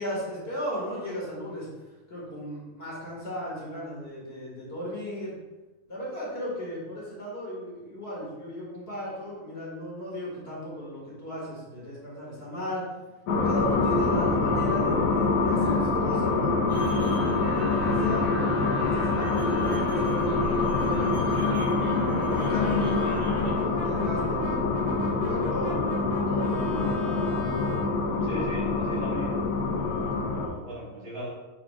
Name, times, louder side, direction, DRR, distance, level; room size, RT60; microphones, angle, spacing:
voice 1, 0.0-1.7 2.1-5.3 5.9-12.8 13.4-17.2 17.6-21.5 22.1-27.4, equal, 40° left, -6 dB, 2.2 m, -36 dB
sound 1, 13.3-30.5, left 3 dB, 80° left, 1.3 m, -25 dB
sound 2, 16.7-23.5, equal, 35° right, 1.4 m, -40 dB
Brass instrument, 21.8-27.9, left 3 dB, 20° left, 2.1 m, -42 dB
voice 2, 28.2-29.4 29.8-31.3, right 1 dB, 65° right, -5 dB, 2.2 m, -38 dB
9.2 x 4.4 x 2.4 m, 1.1 s
omnidirectional pair, 1.6 m